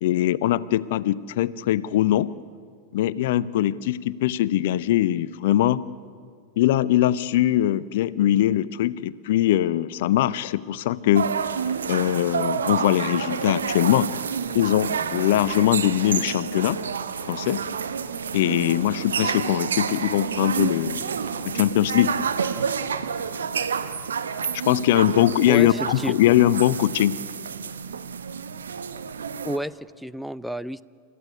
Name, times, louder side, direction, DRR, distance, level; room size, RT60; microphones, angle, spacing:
voice 1, 0.0-2.3 2.9-5.8 6.6-11.3 11.9-14.1 14.5-16.8 17.3-17.6 18.3-21.0 21.4-22.1 24.7-27.1, left 13 dB, 55° left, 18 dB, 0.6 m, -21 dB
sound 1, 11.1-29.6, right 6 dB, 70° right, 1.0 m, -29 dB
voice 2, 25.5-26.2 29.4-30.8, right 1 dB, ahead, 17 dB, 0.5 m, -30 dB
29.0 x 14.0 x 9.8 m, 2.2 s
figure-of-eight pair, 90°, 0 cm